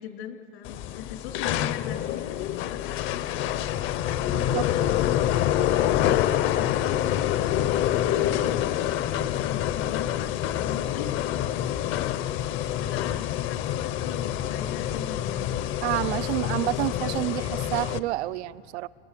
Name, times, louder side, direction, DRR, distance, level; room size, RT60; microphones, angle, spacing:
voice 1, 0.0-2.8 4.3-8.6 8.9-11.2 12.5-15.7 16.1-17.3, left 9 dB, 75° left, 4 dB, 3.2 m, -40 dB
sound 1, 0.6-18.0, left 11 dB, 35° left, 0.8 m, -27 dB
voice 2, 4.3-4.6 15.8-18.9, right 17 dB, 85° right, 17 dB, 0.7 m, -29 dB
28.5 x 20.0 x 6.8 m, 2.3 s
supercardioid pair, 145°, 33 cm